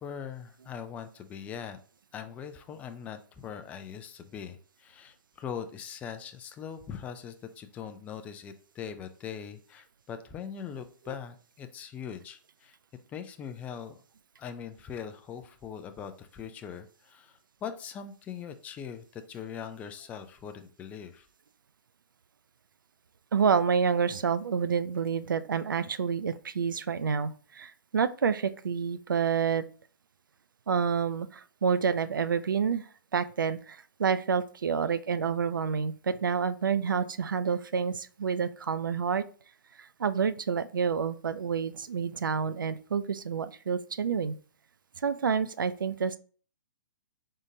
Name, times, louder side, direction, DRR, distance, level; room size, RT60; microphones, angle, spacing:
voice 1, 0.0-1.8 2.1-12.8 13.1-14.0 14.4-21.3, left 7 dB, 15° left, 7 dB, 0.3 m, -41 dB
voice 2, 23.3-29.6 30.7-32.8 33.1-39.2 40.0-44.4 45.0-46.2, right 6 dB, 90° right, 13 dB, 0.4 m, -28 dB
3.9 x 3.6 x 2.7 m, 0.41 s
hypercardioid pair, 135°, 11 cm